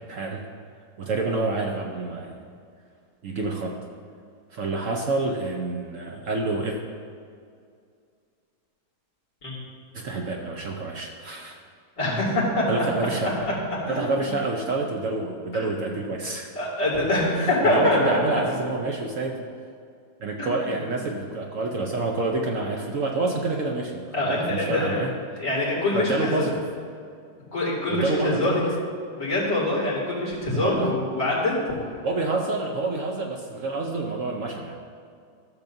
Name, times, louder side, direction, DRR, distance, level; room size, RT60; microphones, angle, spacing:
voice 1, 0.1-0.5 1.0-2.4 3.2-3.8 4.5-6.8 9.9-11.6 12.7-13.3 13.9-16.5 17.3-19.5 20.2-25.1 25.9-26.7 27.9-28.7 30.5-30.9 32.0-34.7, right 3 dB, 60° right, 1 dB, 1.0 m, -28 dB
voice 2, 12.0-12.8 13.4-13.5 13.9-14.2 15.5-15.6 16.5-18.4 20.4-20.5 24.1-25.0 25.4-26.5 27.5-28.6 29.2-31.5, left 2 dB, 50° left, -6 dB, 2.9 m, -24 dB
14.0 x 7.0 x 2.7 m, 2.3 s
omnidirectional pair, 1.7 m